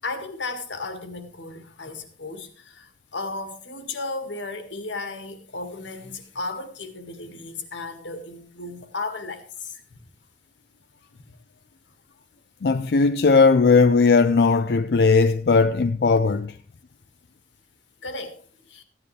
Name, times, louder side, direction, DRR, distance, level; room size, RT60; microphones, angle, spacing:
voice 1, 0.0-10.0 11.1-11.4 18.0-18.8, left 3 dB, 85° left, 1.8 m, -35 dB
voice 2, 12.6-16.5, left 4 dB, 60° left, 0.4 m, -18 dB
15.5 x 9.7 x 3.3 m
head